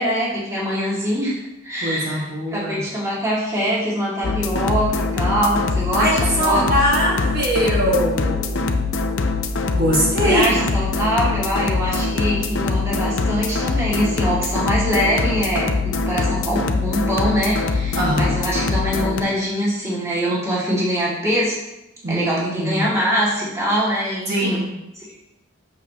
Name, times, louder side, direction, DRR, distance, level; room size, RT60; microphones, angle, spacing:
voice 1, 0.0-6.8 10.2-21.5 22.1-24.6 25.0-25.1, equal, 15° right, -7 dB, 2.0 m, -23 dB
voice 2, 1.8-2.8 6.0-8.8 9.7-10.5 17.9-18.4 22.0-22.8 24.3-24.7, equal, 50° right, -5 dB, 1.6 m, -22 dB
sound 1, 4.2-19.2, left 3 dB, 65° left, 0.6 m, -23 dB
8.2 x 6.6 x 2.9 m, 0.92 s
head